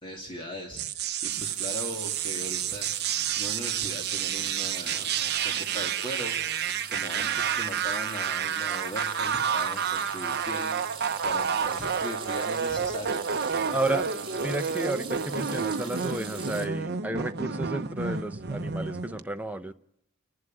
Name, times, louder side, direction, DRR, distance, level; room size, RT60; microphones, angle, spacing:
voice 1, 0.0-2.9 3.2-5.1 5.4-6.4 6.9-13.2, equal, 20° left, 2.5 m, -39 dB
sound 1, 0.8-19.2, right 7 dB, 45° right, 0.8 m, -30 dB
sound 2, 1.3-16.7, right 6 dB, 25° right, 2.8 m, -43 dB
voice 2, 13.7-14.1 14.4-19.7, right 2 dB, 5° right, 0.7 m, -32 dB
29.5 x 11.5 x 7.8 m
head